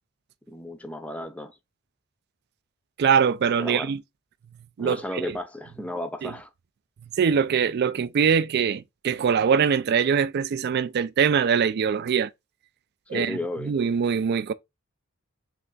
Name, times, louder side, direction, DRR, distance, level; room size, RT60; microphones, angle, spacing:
voice 1, 0.5-1.5 3.6-3.9 4.8-6.5 13.1-13.7, left 1 dB, 5° left, 0.5 m, -33 dB
voice 2, 3.0-4.0 4.8-5.0 6.2-6.3 7.2-12.3 13.1-13.4 13.6-14.5, right 7 dB, 50° right, 0.3 m, -22 dB
3.4 x 3.3 x 3.8 m
head